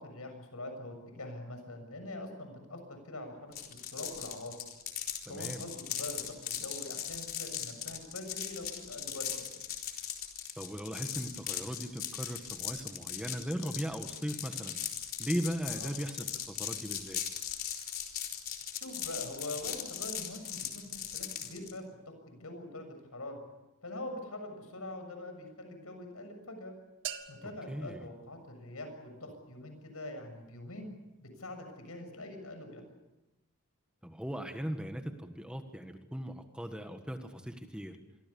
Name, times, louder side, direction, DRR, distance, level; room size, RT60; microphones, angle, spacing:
voice 1, 0.0-3.4 3.9-4.6 5.3-9.5 15.7-15.9 18.8-21.8 22.3-23.4 23.8-26.8 27.3-30.9 31.2-32.8, left 1 dB, 75° left, 6 dB, 7.1 m, -44 dB
sound 1, 3.5-21.7, left 9 dB, 45° left, 4.1 m, -39 dB
voice 2, 5.2-5.6 10.6-14.8 15.2-17.2 27.4-28.1 34.0-38.0, equal, 5° right, 6 dB, 1.6 m, -38 dB
sound 2, 27.0-29.0, right 9 dB, 60° right, 1.9 m, -45 dB
28.0 x 23.5 x 7.1 m, 0.98 s
head